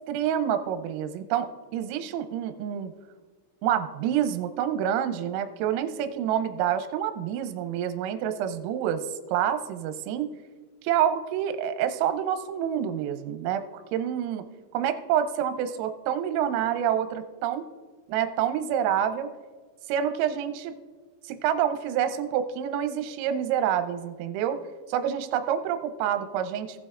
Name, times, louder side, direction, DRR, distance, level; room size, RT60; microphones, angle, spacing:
voice 1, 0.1-2.9 3.6-9.0 9.3-10.3 10.8-13.6 13.9-14.5 14.7-17.6 18.1-19.3 19.9-20.7 21.2-24.6 24.9-26.8, right 9 dB, 85° right, 8 dB, 3.3 m, -27 dB
17.5 x 8.1 x 2.4 m, 1.5 s
omnidirectional pair, 6.0 m